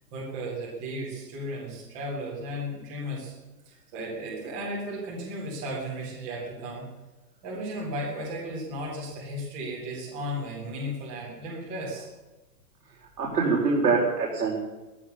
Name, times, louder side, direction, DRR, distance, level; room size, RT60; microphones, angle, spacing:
voice 1, 0.1-3.3 3.7-6.9 7.4-12.1, equal, 5° right, -5 dB, 0.6 m, -35 dB
voice 2, 13.2-14.6, right 4 dB, 70° right, -4 dB, 4.7 m, -24 dB
15.5 x 13.5 x 6.8 m, 1.1 s
hypercardioid pair, 180°, 49 cm